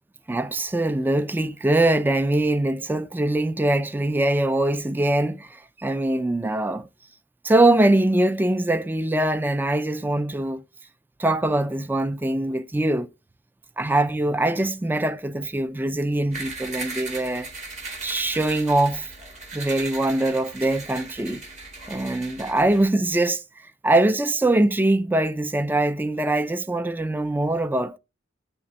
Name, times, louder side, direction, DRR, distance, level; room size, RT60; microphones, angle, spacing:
voice 1, 0.3-6.9 7.4-10.6 11.2-13.1 13.8-17.5 18.0-19.1 19.5-21.4 21.9-23.4 23.8-28.0, right 1 dB, 10° right, 0.3 m, -22 dB
sound 1, 16.3-22.8, right 3 dB, 40° right, 1.7 m, -37 dB
9.5 x 3.3 x 4.0 m
head